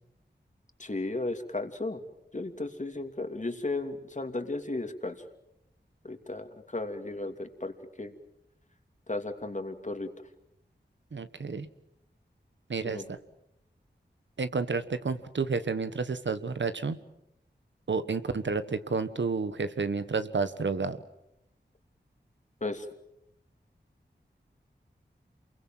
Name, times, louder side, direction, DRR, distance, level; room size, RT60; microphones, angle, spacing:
voice 1, 0.8-2.0 2.3-5.2 6.0-7.7 8.0-8.1 9.1-10.1 12.8-13.1 22.6-22.9, left 2 dB, 40° left, 6 dB, 2.8 m, -34 dB
voice 2, 11.1-11.7 12.7-13.2 14.4-17.0 17.9-21.0, right 4 dB, 85° right, 11 dB, 1.4 m, -30 dB
28.0 x 22.5 x 7.7 m, 0.85 s
wide cardioid pair, 50°, 19 cm